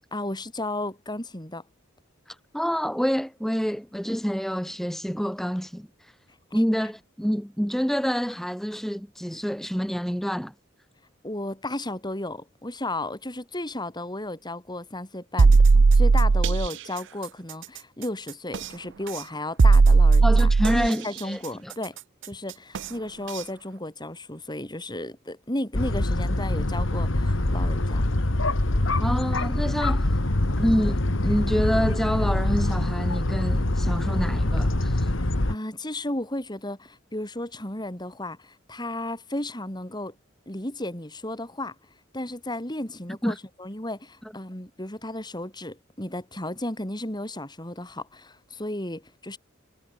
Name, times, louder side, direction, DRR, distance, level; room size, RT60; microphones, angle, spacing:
voice 1, 0.1-1.6 6.5-6.6 11.2-22.0 22.2-28.1 35.1-40.2 40.5-41.8 42.1-49.4, left 1 dB, 20° left, 5.2 m, -34 dB
voice 2, 2.3-6.2 6.5-10.5 20.2-21.7 29.0-30.1 30.6-35.1 43.2-43.4, equal, ahead, 1.9 m, -27 dB
sound 1, 15.4-16.7 18.5-18.7 19.6-20.9 22.7-22.9 23.4-23.5, right 4 dB, 65° right, 0.6 m, -16 dB
Highway bridge with dogs, 25.7-35.6, left 1 dB, 70° left, 1.9 m, -24 dB
head